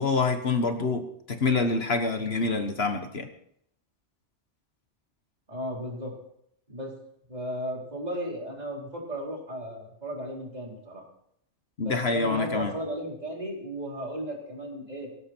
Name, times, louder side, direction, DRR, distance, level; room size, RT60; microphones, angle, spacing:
voice 1, 0.0-3.3 11.8-12.7, left 4 dB, 60° left, 7 dB, 1.5 m, -26 dB
voice 2, 5.5-6.1 6.7-6.9 7.3-11.0 11.8-15.1, equal, 35° right, -2 dB, 4.6 m, -35 dB
18.5 x 16.5 x 4.5 m, 0.71 s
omnidirectional pair, 1.2 m